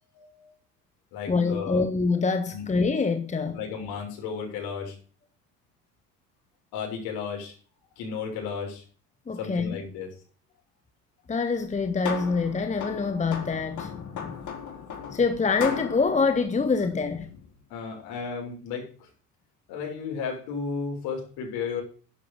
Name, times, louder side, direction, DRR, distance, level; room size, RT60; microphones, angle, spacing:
voice 1, 0.1-0.5 1.1-1.8 2.5-2.6 3.5-4.9 6.7-7.5 8.0-8.8 9.4-10.2 17.7-19.1 19.7-21.8, left 6 dB, 55° left, 6.8 m, -34 dB
voice 2, 1.3-3.6 9.3-9.8 11.3-14.4 15.1-17.3, left 4 dB, 15° left, 1.2 m, -25 dB
sound 1, 11.6-17.5, left 6 dB, 40° left, 4.2 m, -37 dB
12.0 x 10.5 x 5.1 m
figure-of-eight pair, 70°, 47 cm